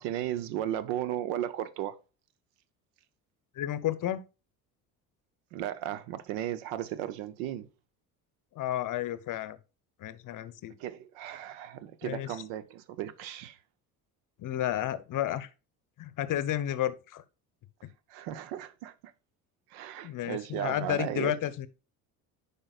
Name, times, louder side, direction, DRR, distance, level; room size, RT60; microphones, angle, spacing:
voice 1, 0.0-2.0 5.5-7.7 10.8-13.6 18.1-18.9 19.7-21.3, right 12 dB, 75° right, 0.7 m, -35 dB
voice 2, 3.6-4.2 8.5-9.6 10.0-10.7 12.0-12.3 14.4-15.5 16.0-17.2 20.0-21.7, left 12 dB, 45° left, 0.7 m, -32 dB
8.7 x 5.3 x 2.3 m
hypercardioid pair, 70°, 44 cm